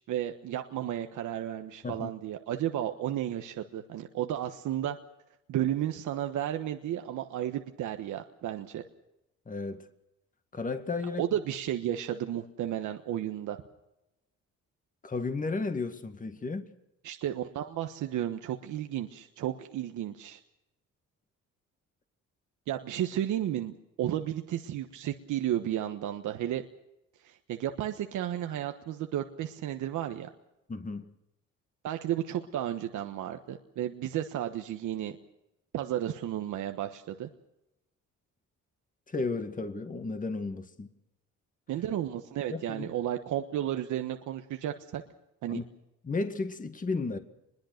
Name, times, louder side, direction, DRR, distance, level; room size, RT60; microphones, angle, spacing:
voice 1, 0.1-5.0 5.5-8.8 11.2-13.6 17.0-20.4 22.7-26.6 27.2-30.3 31.8-35.2 35.7-37.3 41.7-45.0 45.4-45.6, right 11 dB, 80° right, 1.3 m, -33 dB
voice 2, 9.5-9.9 10.5-11.2 15.0-16.7 30.7-31.1 39.1-40.9 42.5-42.9 45.5-45.6 46.0-47.2, left 3 dB, 25° left, 1.9 m, -33 dB
23.5 x 21.5 x 6.6 m
cardioid pair, 90°, 30 cm